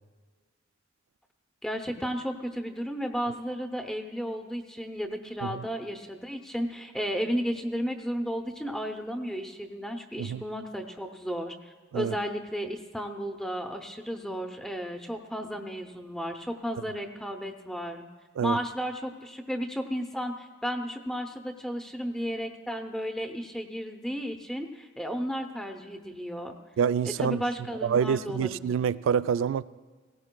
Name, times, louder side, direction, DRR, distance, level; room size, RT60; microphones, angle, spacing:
voice 1, 1.6-18.1 18.4-26.5 27.2-28.7, equal, 5° left, 0.6 m, -33 dB
voice 2, 26.8-27.4 27.8-29.6, right 7 dB, 90° right, 0.3 m, -26 dB
18.0 x 17.0 x 2.2 m
head